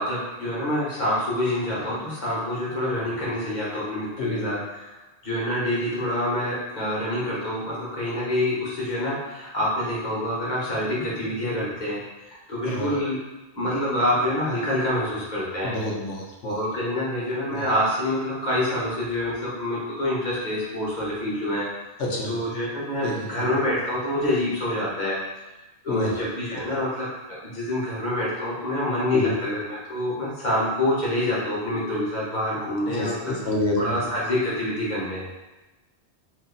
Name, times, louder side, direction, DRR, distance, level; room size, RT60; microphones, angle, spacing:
voice 1, 0.0-4.9 5.2-12.0 12.3-13.2 13.5-15.8 16.4-21.7 22.2-25.2 25.8-27.1 27.4-33.3 33.8-35.3, left 1 dB, 45° left, -7 dB, 1.2 m, -26 dB
voice 2, 4.2-4.6 12.7-12.9 15.6-16.6 17.5-17.7 22.0-22.3 23.0-23.5 25.9-26.2 26.5-26.6 29.1-29.3 32.7-34.0, left 2 dB, 80° left, -1 dB, 1.0 m, -28 dB
2.8 x 2.6 x 3.8 m, 1.1 s
omnidirectional pair, 1.1 m